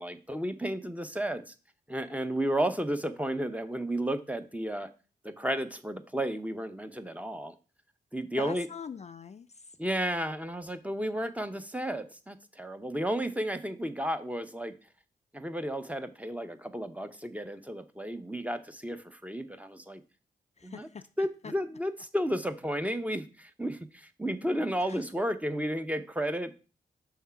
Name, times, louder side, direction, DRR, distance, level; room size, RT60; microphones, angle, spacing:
voice 1, 0.0-1.5 1.9-4.9 5.2-7.5 8.1-8.7 9.8-14.7 15.3-20.0 20.6-20.9 21.2-26.5, equal, 10° right, 9 dB, 0.8 m, -33 dB
voice 2, 8.4-9.8 20.6-21.5 24.8-25.0, left 6 dB, 40° left, 11 dB, 0.4 m, -44 dB
5.6 x 3.6 x 5.7 m, 0.35 s
cardioid pair, 50°, 18 cm